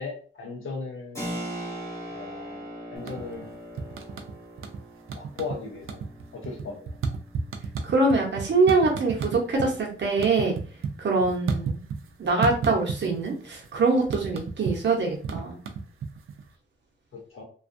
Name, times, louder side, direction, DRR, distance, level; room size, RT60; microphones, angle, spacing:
voice 1, 0.0-1.4 2.1-2.6 2.9-3.6 5.1-6.0 6.3-7.0 17.1-17.4, left 4 dB, 75° left, 1 dB, 0.7 m, -37 dB
Keyboard (musical), 1.1-11.5, right 1 dB, 15° left, 0.9 m, -41 dB
sound 1, 3.0-3.5 3.8-4.8 5.1-5.6 5.8-9.7 10.0-12.1 12.4-13.3 13.5-16.4, right 5 dB, 85° right, 0.4 m, -32 dB
voice 2, 7.8-10.6 11.0-11.8 12.2-15.6, right 3 dB, 60° right, -1 dB, 0.8 m, -24 dB
2.4 x 2.3 x 2.6 m, 0.41 s
wide cardioid pair, 170°, 21 cm